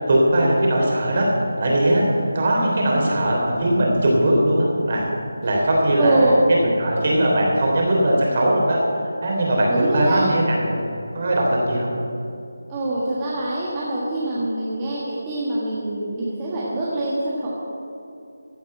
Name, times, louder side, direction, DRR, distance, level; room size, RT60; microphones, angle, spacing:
voice 1, 0.1-1.3 1.6-2.1 2.3-5.1 5.4-8.9 9.2-10.8 11.1-11.9, right 1 dB, 40° right, -2 dB, 3.3 m, -19 dB
voice 2, 6.0-6.5 9.7-10.3 12.7-17.5, right 2 dB, 15° right, -7 dB, 1.4 m, -24 dB
15.5 x 5.3 x 8.8 m, 2.7 s
figure-of-eight pair, 170°, 0 cm